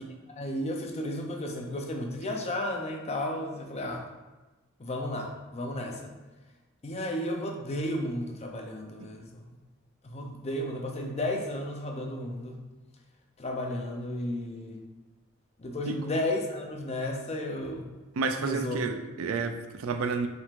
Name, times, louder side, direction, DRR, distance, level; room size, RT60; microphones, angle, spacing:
voice 1, 0.3-4.0 4.8-6.1 6.8-9.4 10.1-12.6 13.4-14.8 15.6-17.9 18.4-18.8, left 1 dB, 30° left, 2 dB, 0.6 m, -33 dB
voice 2, 18.2-20.3, right 4 dB, 85° right, 6 dB, 0.4 m, -30 dB
5.6 x 3.6 x 2.4 m, 1.1 s
head